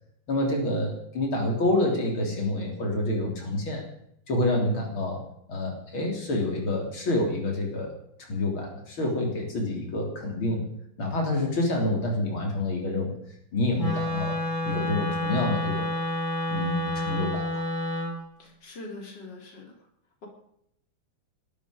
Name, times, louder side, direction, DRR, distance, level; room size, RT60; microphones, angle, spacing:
voice 1, 0.3-3.8 4.3-5.2 5.5-7.9 8.3-10.7 11.0-13.2 13.5-14.4 14.6-15.9 16.5-17.6, left 2 dB, 80° left, 1 dB, 4.2 m, -27 dB
Wind instrument woodwind instrument, 13.8-18.1, left 1 dB, 20° left, 8.2 m, -29 dB
voice 2, 18.4-19.7, left 2 dB, 60° left, 1 dB, 4.1 m, -42 dB
20.5 x 13.0 x 5.1 m, 0.73 s
omnidirectional pair, 2.2 m